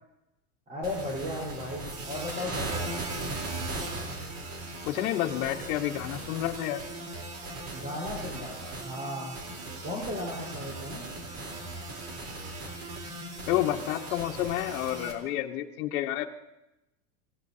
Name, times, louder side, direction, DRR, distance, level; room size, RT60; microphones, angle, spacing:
voice 1, 0.7-3.0 7.7-9.4 9.8-11.1, left 1 dB, 20° right, -4 dB, 4.4 m, -36 dB
sound 1, 0.8-15.1, right 2 dB, 40° right, 3.8 m, -38 dB
voice 2, 4.8-6.8 13.5-16.3, left 13 dB, 70° left, 2 dB, 1.4 m, -29 dB
25.0 x 17.5 x 2.8 m, 0.93 s
supercardioid pair, 150°, 44 cm